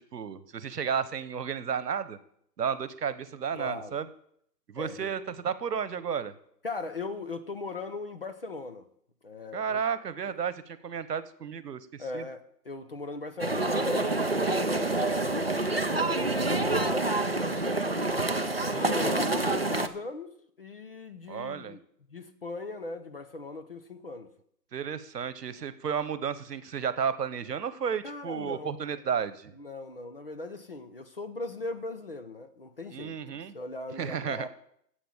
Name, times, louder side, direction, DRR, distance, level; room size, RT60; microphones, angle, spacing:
voice 1, 0.1-2.2 2.6-4.1 4.7-6.3 9.5-12.2 16.2-16.8 21.3-21.8 24.7-29.5 32.9-33.6 34.0-34.5, right 7 dB, 75° right, 14 dB, 1.2 m, -33 dB
voice 2, 3.5-4.0 4.8-5.1 6.6-8.9 9.2-9.8 10.2-10.3 12.0-18.0 18.6-21.8 22.1-24.3 28.0-28.8 29.6-33.2 33.5-34.5, left 3 dB, 35° left, 8 dB, 0.8 m, -39 dB
sound 1, 13.4-19.9, right 2 dB, 40° right, 0.4 m, -27 dB
10.0 x 8.0 x 7.2 m, 0.69 s
hypercardioid pair, 175°, 48 cm